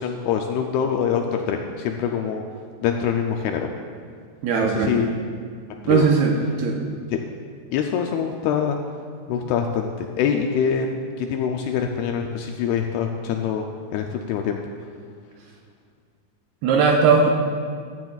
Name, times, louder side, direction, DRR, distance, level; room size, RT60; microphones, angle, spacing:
voice 1, 0.0-2.4 2.8-3.7 4.6-5.1 5.8-6.1 7.1-7.2 7.7-8.8 9.3-10.9 11.2-13.7 13.9-14.6, left 7 dB, 80° left, 3 dB, 2.3 m, -24 dB
voice 2, 4.4-4.9 5.9-6.8 16.6-17.3, right 5 dB, 80° right, 1 dB, 2.4 m, -18 dB
15.0 x 12.0 x 2.3 m, 2.1 s
omnidirectional pair, 5.0 m